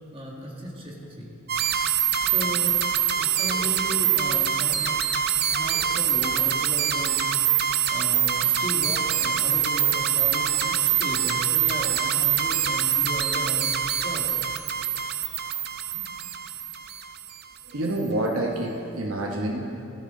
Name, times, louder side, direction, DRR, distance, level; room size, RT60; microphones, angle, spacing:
voice 1, 0.1-1.3 1.8-2.8 3.2-7.2 7.9-14.3, equal, 25° right, -2 dB, 1.8 m, -36 dB
sound 1, 1.5-17.4, right 9 dB, 45° right, 0.6 m, -24 dB
voice 2, 3.2-3.7 5.5-5.8 6.2-6.3 15.9-16.0 17.6-19.8, right 1 dB, 70° right, 1 dB, 1.1 m, -29 dB
16.0 x 13.0 x 3.8 m, 2.7 s
head